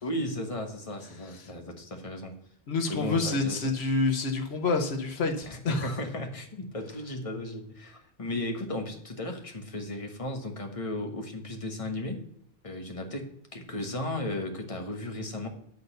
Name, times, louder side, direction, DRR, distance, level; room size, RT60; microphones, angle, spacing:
voice 1, 0.0-2.3 2.9-3.6 5.5-12.2 12.6-15.5, left 1 dB, 35° left, 3 dB, 1.4 m, -35 dB
voice 2, 2.7-5.9, left 3 dB, 85° left, 4 dB, 1.3 m, -28 dB
8.9 x 4.0 x 6.6 m, 0.69 s
omnidirectional pair, 1.1 m